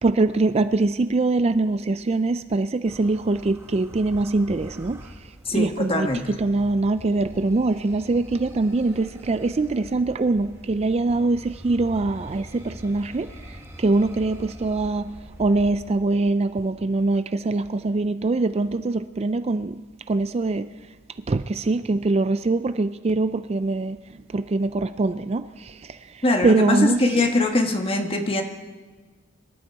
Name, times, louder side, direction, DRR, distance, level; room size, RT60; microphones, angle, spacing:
voice 1, 0.0-5.0 5.5-13.3 13.8-15.1 15.4-19.8 20.1-20.7 21.3-24.0 24.3-25.7 26.4-27.0, right 3 dB, 30° right, 12 dB, 0.4 m, -23 dB
sound 1, 2.8-16.0, equal, 15° right, 1.8 m, -44 dB
voice 2, 5.4-6.3 26.2-28.4, left 2 dB, 30° left, 4 dB, 1.5 m, -22 dB
25.5 x 12.0 x 4.6 m, 1.3 s
head